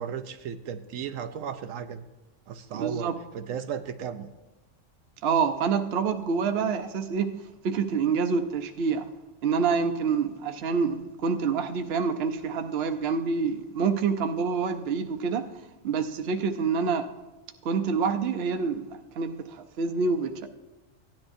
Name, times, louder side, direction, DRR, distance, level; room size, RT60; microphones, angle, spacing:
voice 1, 0.0-2.0 2.5-4.3, right 8 dB, 90° right, 1.0 m, -35 dB
voice 2, 2.7-3.2 5.2-7.4 7.6-9.1 9.4-15.5 15.8-17.1 17.6-18.9 19.1-20.5, right 5 dB, 60° right, 0.9 m, -27 dB
16.5 x 10.5 x 2.6 m
omnidirectional pair, 1.3 m